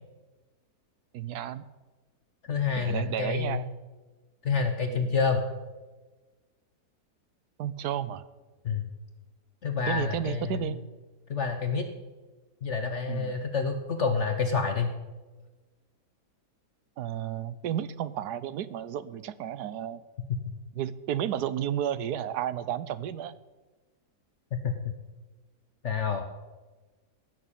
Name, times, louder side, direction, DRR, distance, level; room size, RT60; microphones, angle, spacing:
voice 1, 1.1-1.6 2.8-3.7 4.9-5.1 7.6-8.3 9.9-10.8 13.1-13.3 17.0-20.0 20.7-23.4, right 10 dB, 80° right, 16 dB, 1.3 m, -32 dB
voice 2, 2.5-3.6 4.4-5.4 8.6-8.9 9.6-10.7 11.3-11.9 12.6-14.9 20.3-20.4 24.5-24.9 25.8-26.2, left 5 dB, 50° left, 6 dB, 1.2 m, -28 dB
16.0 x 6.9 x 8.7 m, 1.3 s
omnidirectional pair, 1.7 m